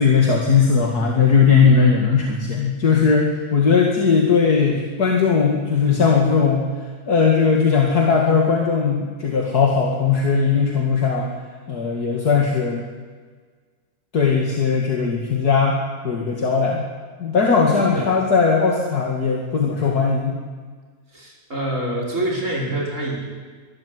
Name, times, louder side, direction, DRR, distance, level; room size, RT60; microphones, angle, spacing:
voice 1, 0.0-6.7 7.1-11.3 11.7-12.8 14.1-16.8 17.2-20.4, left 5 dB, 75° left, 0 dB, 2.7 m, -18 dB
voice 2, 21.1-23.2, right 1 dB, 50° right, -3 dB, 5.9 m, -26 dB
24.5 x 12.5 x 9.9 m, 1.5 s
omnidirectional pair, 1.7 m